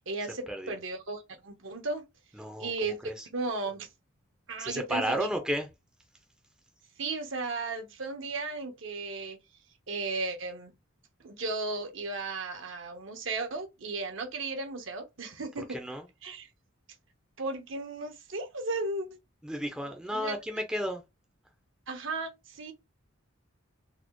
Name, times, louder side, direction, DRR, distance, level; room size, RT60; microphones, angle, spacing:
voice 1, 0.1-2.0 2.6-3.0 3.3-3.9 4.5-5.3 7.0-9.4 9.9-10.7 11.2-15.8 16.2-16.5 17.4-19.2 20.1-20.3 21.9-22.7, right 3 dB, 65° right, 0.9 m, -35 dB
voice 2, 2.3-2.7 3.0-3.3 4.6-5.7 15.6-16.0 19.4-21.0, equal, 5° right, 0.5 m, -33 dB
4.1 x 2.1 x 3.0 m
head